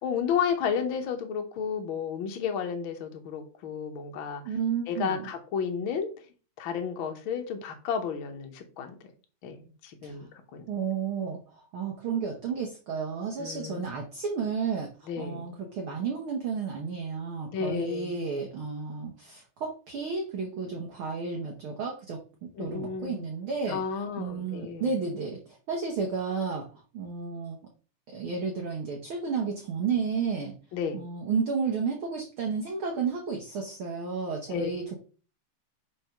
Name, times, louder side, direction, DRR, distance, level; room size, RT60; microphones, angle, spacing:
voice 1, 0.0-4.4 4.9-6.1 6.6-9.0 9.4-10.3 10.5-10.7 13.4-13.9 15.1-15.4 17.5-18.1 22.6-23.2 23.7-24.9 30.7-31.0 34.5-34.7, left 7 dB, 60° left, 5 dB, 1.4 m, -32 dB
voice 2, 4.4-5.3 10.0-10.1 10.7-11.4 11.7-14.9 15.2-23.8 24.2-25.4 25.7-26.7 26.9-27.6 28.1-30.5 30.9-35.0, right 5 dB, 55° right, 0 dB, 1.5 m, -32 dB
4.9 x 4.9 x 5.8 m, 0.37 s
omnidirectional pair, 3.7 m